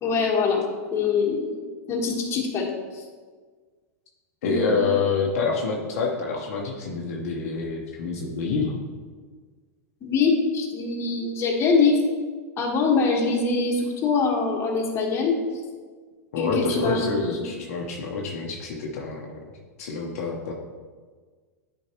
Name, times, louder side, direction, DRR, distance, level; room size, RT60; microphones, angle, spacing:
voice 1, 0.0-0.7 0.9-1.5 1.9-3.0 4.4-4.7 10.0-12.0 12.6-15.4 16.4-17.0 17.3-17.4, left 4 dB, 30° left, 0 dB, 1.6 m, -23 dB
voice 2, 4.4-8.8 16.3-19.3 19.8-20.5, left 4 dB, 65° left, 0 dB, 1.0 m, -27 dB
10.0 x 4.6 x 3.0 m, 1.5 s
hypercardioid pair, 105°, 9 cm